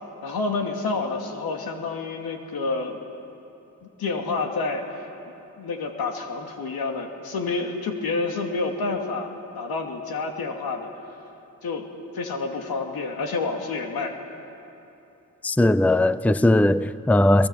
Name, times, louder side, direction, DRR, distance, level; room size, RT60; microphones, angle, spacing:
voice 1, 0.2-3.0 3.8-4.9 5.6-9.3 9.5-10.9 11.6-11.9 12.1-14.1, left 3 dB, 80° left, 2.5 m, -28 dB
voice 2, 15.4-17.5, left 1 dB, 5° left, 0.6 m, -19 dB
25.5 x 22.5 x 7.1 m
supercardioid pair, 45°, 36 cm